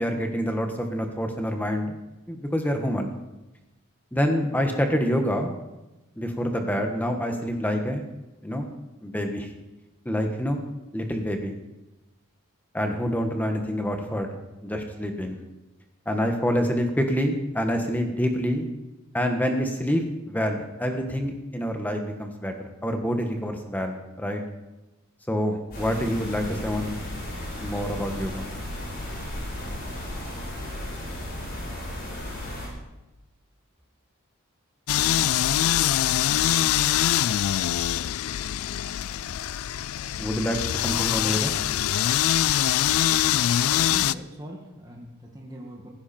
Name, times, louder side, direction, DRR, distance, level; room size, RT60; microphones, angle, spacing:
voice 1, 0.0-1.9 2.3-3.1 4.1-5.5 6.2-8.0 8.4-8.7 9.0-9.5 10.0-10.6 10.9-11.6 12.7-14.3 14.6-15.4 16.0-18.7 19.1-24.4 25.3-26.9 27.6-28.4 40.2-41.5, equal, 5° left, 4 dB, 1.4 m, -27 dB
sound 1, 25.7-32.7, left 1 dB, 40° left, 6.9 m, -34 dB
sound 2, 34.9-44.1, left 11 dB, 75° left, 0.4 m, -23 dB
voice 2, 43.6-45.9, equal, 15° right, -1 dB, 2.0 m, -41 dB
16.0 x 15.5 x 4.4 m, 1.0 s
head